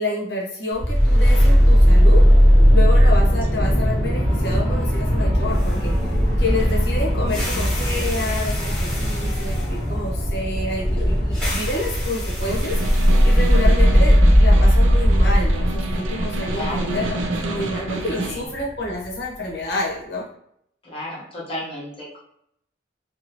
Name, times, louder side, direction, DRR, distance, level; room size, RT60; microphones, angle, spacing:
voice 1, 0.0-2.2 2.7-20.3, left 2 dB, 55° left, -3 dB, 0.8 m, -29 dB
sound 1, 0.8-18.9, equal, 5° left, 1.1 m, -17 dB
Snare drum, 12.3-18.5, right 2 dB, 80° right, 0.5 m, -29 dB
voice 2, 16.5-16.9 18.3-18.4 20.8-22.2, left 1 dB, 30° left, -6 dB, 1.0 m, -33 dB
2.8 x 2.4 x 2.8 m, 0.72 s
head